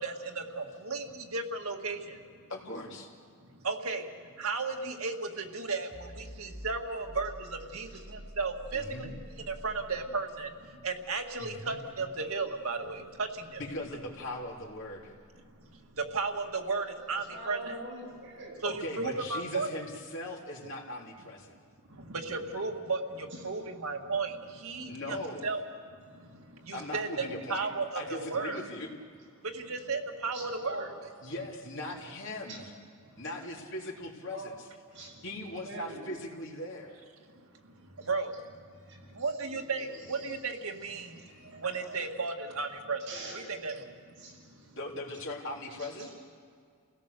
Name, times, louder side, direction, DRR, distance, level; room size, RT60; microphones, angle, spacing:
voice 1, 0.0-2.2 3.5-4.1 4.4-13.6 15.6-17.8 18.6-19.7 21.9-28.6 29.4-30.9 37.6-38.6 39.0-43.1 43.3-44.5, right 4 dB, 85° right, 3 dB, 1.9 m, -35 dB
voice 2, 2.5-3.1 8.7-9.2 11.4-11.8 13.6-15.1 18.6-21.5 24.9-25.5 26.7-27.7 27.9-28.9 31.2-32.6 33.2-34.5 35.0-37.0 44.8-46.1, left 1 dB, 60° left, -2 dB, 3.5 m, -39 dB
sound 1, 5.9-17.3, equal, 5° left, 2.4 m, -51 dB
voice 3, 7.7-8.0 16.7-18.6 23.3-23.4 30.3-30.9 32.5-32.6 34.3-34.5 34.9-35.2 35.6-36.0 36.7-36.8 38.0-38.1 38.8-40.4 41.0-42.0 43.1-43.5 44.2-44.7 45.8-46.1, right 2 dB, 60° right, -4 dB, 7.6 m, -46 dB
30.0 x 17.0 x 6.8 m, 2.2 s
head